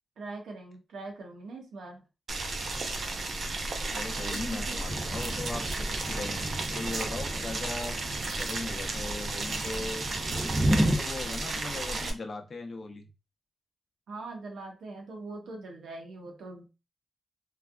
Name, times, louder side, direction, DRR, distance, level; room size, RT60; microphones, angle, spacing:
voice 1, 0.2-2.0 4.2-4.8 14.1-16.7, right 3 dB, 90° right, 0.9 m, -42 dB
Boiling, 2.3-12.1, right 2 dB, 60° right, 0.6 m, -33 dB
voice 2, 3.9-8.0 8.4-10.0 10.7-13.1, left 3 dB, 45° left, 0.6 m, -38 dB
Thunder / Rain, 4.9-11.0, right 1 dB, 15° right, 0.4 m, -32 dB
3.3 x 2.4 x 2.2 m
cardioid pair, 80°, 0 cm